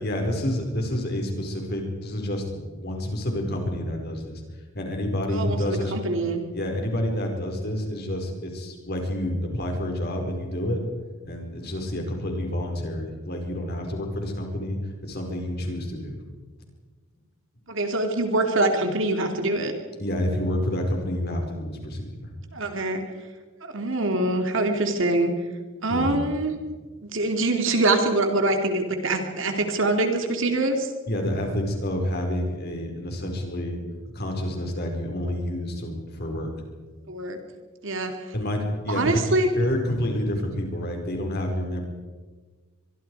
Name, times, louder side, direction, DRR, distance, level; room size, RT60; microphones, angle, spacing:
voice 1, 0.0-4.4 4.7-5.9 6.5-10.8 11.2-16.2 20.0-22.3 25.9-26.1 31.1-33.8 34.1-36.5 38.3-39.2 39.5-41.8, left 1 dB, 45° left, 2 dB, 4.8 m, -28 dB
voice 2, 5.3-6.4 17.7-19.7 22.5-23.0 23.6-25.3 25.8-26.5 27.1-30.9 37.1-37.4 37.8-38.1 38.9-39.5, right 2 dB, 60° right, 5 dB, 2.7 m, -24 dB
24.5 x 23.5 x 4.8 m, 1.4 s
head